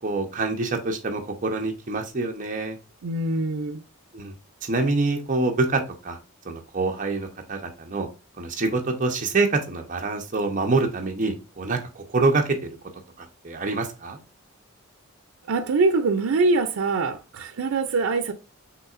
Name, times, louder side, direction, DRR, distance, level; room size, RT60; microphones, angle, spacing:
voice 1, 0.0-2.8 4.1-4.3 4.6-6.2 6.4-8.1 8.4-12.8 13.2-14.2, right 3 dB, 35° right, 0.8 m, -26 dB
voice 2, 3.0-3.8 15.5-18.3, right 3 dB, 80° right, 0.5 m, -23 dB
5.7 x 3.3 x 2.4 m
head